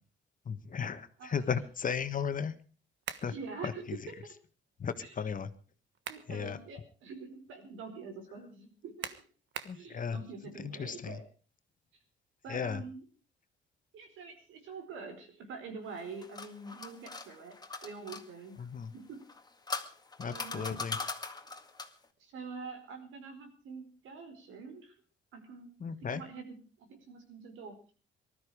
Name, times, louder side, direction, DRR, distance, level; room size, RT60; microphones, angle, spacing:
voice 1, 0.5-2.5 3.2-3.3 3.6-3.7 4.8-5.5 6.3-6.6 9.6-10.2 10.8-11.1 12.5-12.8 18.6-18.9 20.2-21.0 25.8-26.2, left 6 dB, 45° left, 10 dB, 1.5 m, -35 dB
voice 2, 1.2-1.5 3.2-4.1 5.0-5.3 6.1-9.2 9.7-11.2 12.4-13.0 13.9-17.5 17.8-18.7 18.9-19.2 20.3-20.8 22.2-24.9 25.3-25.7 26.0-27.9, right 4 dB, 85° right, 6 dB, 4.7 m, -45 dB
sound 1, 3.0-3.4 5.7-6.3 6.8-6.9 9.0-9.8, right 8 dB, 70° right, 1.4 m, -41 dB
sound 2, 15.9-18.2 19.2-22.0, left 4 dB, 20° left, 2.1 m, -40 dB
19.5 x 13.0 x 5.0 m, 0.37 s
cardioid pair, 90°, 20 cm